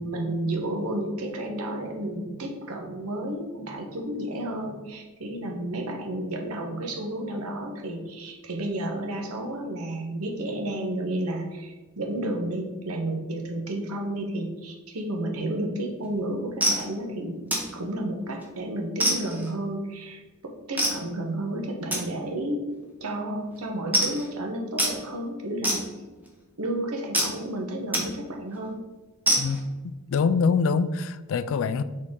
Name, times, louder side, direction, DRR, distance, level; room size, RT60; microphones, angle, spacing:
voice 1, 0.0-17.4 17.7-22.7 23.0-25.8 26.6-28.8, right 1 dB, 75° right, 1 dB, 1.0 m, -31 dB
sound 1, 16.0-16.2 16.6-16.9 17.5-17.8 18.2-18.5 19.0-19.5 20.8-21.0 21.9-22.0 22.7-22.9 23.2-23.3 23.5-23.6 23.9-24.3 24.8-25.0 25.6-26.3 27.1-27.3 27.9-28.1 28.5-28.6 29.3-29.6, right 1 dB, 10° right, 1.0 m, -25 dB
voice 2, 30.1-31.8, left 5 dB, 60° left, 13 dB, 0.3 m, -24 dB
6.3 x 4.1 x 3.7 m, 1.2 s
head